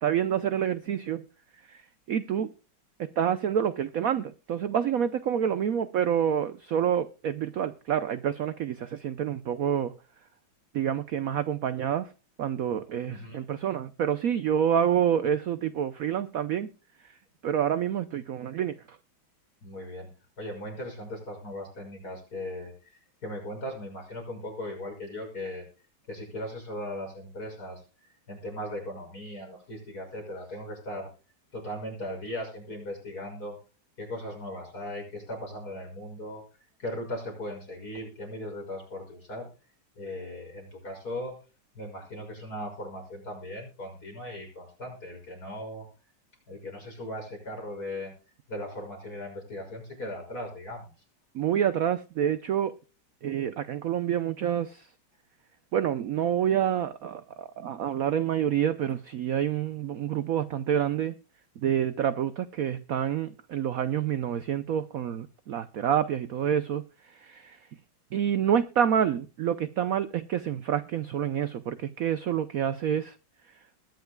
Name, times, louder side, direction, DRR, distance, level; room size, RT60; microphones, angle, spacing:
voice 1, 0.0-1.2 1.7-1.8 2.1-2.5 3.0-9.9 10.7-12.1 12.4-16.7 17.4-18.7 51.3-52.7 53.2-54.8 55.7-61.1 61.6-66.8 67.2-67.6 68.1-73.1, right 9 dB, 65° right, 12 dB, 0.8 m, -27 dB
voice 2, 13.1-13.4 19.6-20.1 20.4-25.6 26.1-27.8 28.3-31.1 31.5-33.6 34.0-36.4 36.8-39.5 39.9-41.3 41.7-45.8 46.5-48.1 48.5-50.9, left 1 dB, 45° left, 1 dB, 6.8 m, -38 dB
20.5 x 10.5 x 2.2 m, 0.34 s
omnidirectional pair, 2.2 m